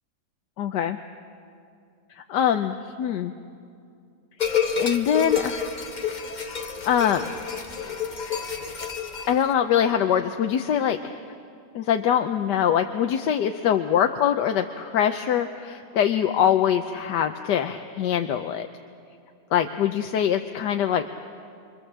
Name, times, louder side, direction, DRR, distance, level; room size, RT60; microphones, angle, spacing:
voice 1, 0.6-1.0 2.2-3.3 4.7-5.6 6.8-7.3 9.3-11.1 11.7-18.7 19.5-21.1, left 9 dB, 85° left, 6 dB, 1.4 m, -23 dB
sound 1, 4.4-9.5, left 7 dB, 30° left, 1.2 m, -29 dB
29.0 x 24.5 x 7.4 m, 2.4 s
omnidirectional pair, 1.8 m